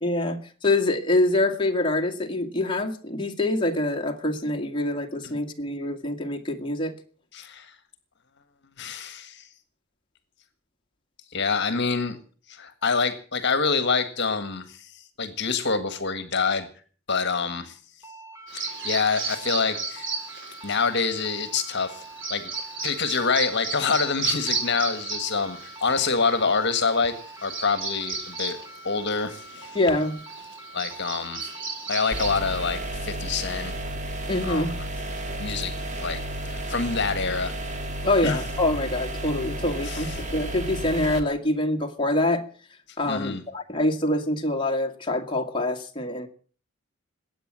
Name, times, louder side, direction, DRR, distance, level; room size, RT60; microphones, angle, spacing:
voice 1, 0.0-6.9 29.7-30.2 34.3-34.7 38.0-42.5 43.0-46.3, left 1 dB, 25° left, 3 dB, 2.0 m, -25 dB
voice 2, 7.3-7.7 8.8-9.5 11.3-12.2 12.5-16.7 17.1-17.8 18.5-20.1 20.6-22.0 22.3-22.5 22.8-27.1 27.4-28.6 28.8-29.8 30.7-31.5 31.9-33.7 34.4-34.7 35.4-37.5 38.2-38.4 39.9-40.1 43.1-43.4, left 4 dB, 55° left, 11 dB, 1.6 m, -26 dB
sound 1, 18.0-32.8, right 2 dB, 15° right, 5.4 m, -45 dB
Bird vocalization bird call bird song, 18.5-32.4, right 4 dB, 65° right, 4.5 m, -34 dB
sound 2, 32.1-41.2, right 1 dB, 35° right, 2.3 m, -32 dB
21.0 x 8.8 x 7.5 m, 0.43 s
head